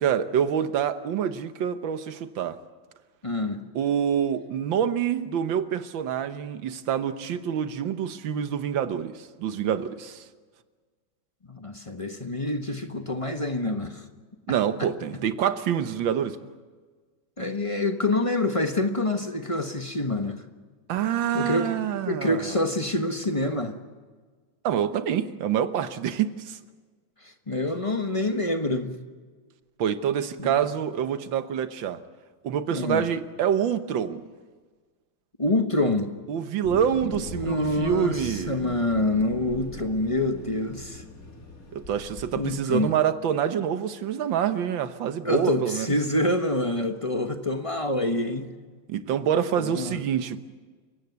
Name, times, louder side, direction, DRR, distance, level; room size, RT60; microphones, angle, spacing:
voice 1, 0.0-2.6 3.8-10.2 14.5-16.4 20.9-22.6 24.6-26.6 29.8-32.0 32.4-34.2 36.3-38.6 41.7-45.9 48.9-50.4, right 8 dB, 75° right, 11 dB, 1.8 m, -26 dB
voice 2, 3.2-3.6 11.5-14.0 17.4-20.4 21.3-21.8 22.1-23.7 27.2-28.9 30.4-30.6 32.7-33.0 35.4-36.1 37.0-41.0 42.4-42.9 45.2-48.5 49.6-50.0, left 2 dB, 20° left, 6 dB, 1.0 m, -26 dB
Thunder, 36.6-42.5, left 1 dB, 45° left, 3.5 m, -41 dB
29.0 x 16.5 x 8.1 m, 1.5 s
omnidirectional pair, 2.1 m